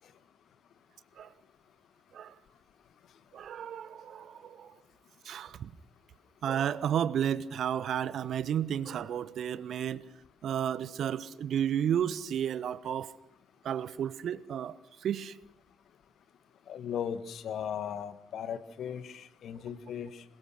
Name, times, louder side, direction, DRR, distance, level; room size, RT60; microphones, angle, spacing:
voice 1, 3.3-4.8 5.2-5.7 6.4-10.0 10.4-13.1 13.6-15.4, right 9 dB, 55° right, 18 dB, 1.0 m, -32 dB
voice 2, 16.7-20.2, left 8 dB, 55° left, 12 dB, 1.7 m, -37 dB
27.0 x 23.0 x 6.3 m, 0.76 s
figure-of-eight pair, 40°, 0 cm